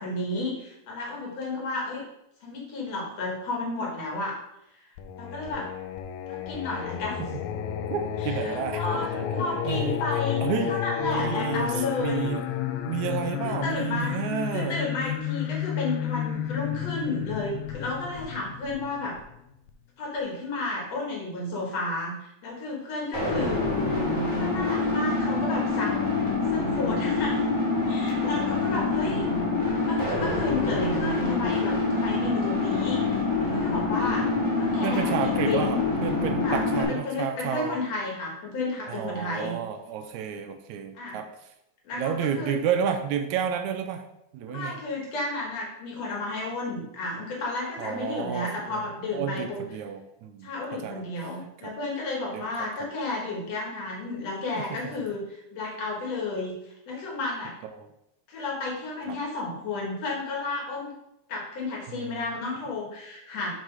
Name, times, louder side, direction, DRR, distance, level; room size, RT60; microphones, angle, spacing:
voice 1, 0.0-2.0 2.4-4.4 5.2-5.7 6.3-7.2 8.2-12.3 13.4-14.1 14.5-19.2 20.0-23.6 24.4-26.0 26.5-27.4 27.9-29.3 29.6-34.3 34.6-35.8 36.4-39.6 41.0-41.2 41.8-42.6 44.5-49.6 50.4-56.5 56.9-57.5 58.3-60.9 61.3-63.5, left 2 dB, 60° left, -2 dB, 2.7 m, -32 dB
Singing, 5.0-19.7, left 10 dB, 80° left, 1.8 m, -31 dB
voice 2, 7.9-12.4 12.9-14.8 34.3-34.5 34.8-37.8 38.9-41.3 41.9-44.0 44.3-44.8 47.8-48.9 49.1-51.0 51.6-51.7 52.3-52.7 54.6-54.9 57.6-57.9 59.1-59.2 61.9-62.2, right 8 dB, 80° right, 6 dB, 1.9 m, -31 dB
sound 1, 23.1-36.8, left 3 dB, 10° left, 2.1 m, -26 dB
6.5 x 4.6 x 4.7 m, 0.83 s
omnidirectional pair, 3.5 m